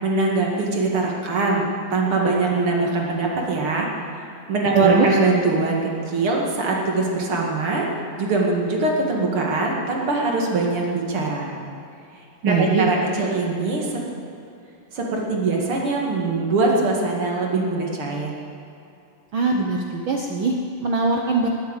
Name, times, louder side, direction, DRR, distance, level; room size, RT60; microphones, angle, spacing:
voice 1, 0.0-3.9 4.1-7.9 8.2-11.6 12.4-14.0 14.9-18.3, right 3 dB, 45° right, -1 dB, 2.7 m, -22 dB
voice 2, 4.8-5.1 12.4-12.9 19.3-21.5, right 4 dB, 75° right, 1 dB, 1.1 m, -22 dB
20.0 x 8.3 x 8.1 m, 2.7 s
omnidirectional pair, 3.7 m